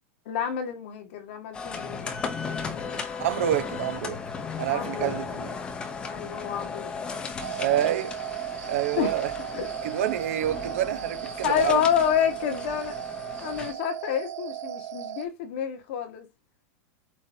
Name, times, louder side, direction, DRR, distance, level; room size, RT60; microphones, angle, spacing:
voice 1, 0.2-2.2 2.4-3.0 4.7-5.5 6.1-7.2 9.0-9.1 9.5-9.7 11.4-12.9 13.4-16.3, left 9 dB, 45° left, 1.7 m, -29 dB
sound 1, 1.5-13.7, left 5 dB, 10° left, 0.7 m, -36 dB
voice 2, 3.2-4.2 4.6-5.5 7.6-8.2 8.7-9.3 9.8-11.8, right 11 dB, 60° right, 1.0 m, -27 dB
sound 2, 7.4-15.2, right 12 dB, 85° right, 1.4 m, -36 dB
8.5 x 4.1 x 2.8 m
supercardioid pair, 180°, 8 cm